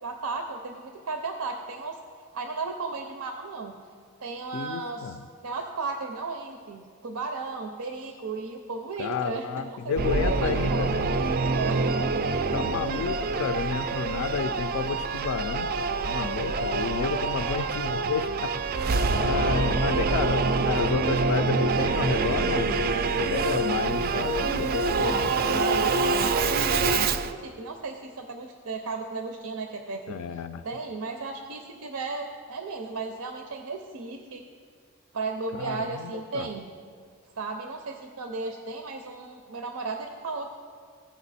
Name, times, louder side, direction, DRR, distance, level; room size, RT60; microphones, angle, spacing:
voice 1, 0.0-2.0 2.3-3.8 4.2-5.2 5.4-11.8 12.9-13.5 17.4-17.7 19.9-20.3 24.9-30.2 30.6-34.4 35.1-36.7 37.4-40.5, right 4 dB, 90° right, 5 dB, 0.6 m, -35 dB
voice 2, 4.5-5.2 9.0-11.1 12.5-18.6 19.1-25.6 30.1-30.6 35.5-36.5, left 6 dB, 70° left, 11 dB, 0.3 m, -31 dB
Singing / Musical instrument, 10.0-27.3, right 4 dB, 45° right, 0.3 m, -26 dB
15.5 x 5.2 x 4.1 m, 2.1 s
head